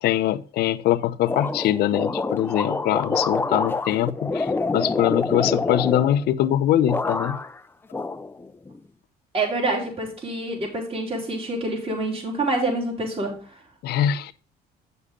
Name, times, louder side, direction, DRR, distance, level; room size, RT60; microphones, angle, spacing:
voice 1, 0.0-7.4 13.8-14.3, left 12 dB, 70° left, 0.7 m, -23 dB
sound 1, 1.3-6.5 6.9-7.6 7.9-8.8, left 3 dB, 15° left, 0.5 m, -27 dB
voice 2, 9.3-13.4, right 2 dB, 35° right, 3.6 m, -26 dB
8.8 x 6.7 x 3.7 m
cardioid pair, 110°, 17 cm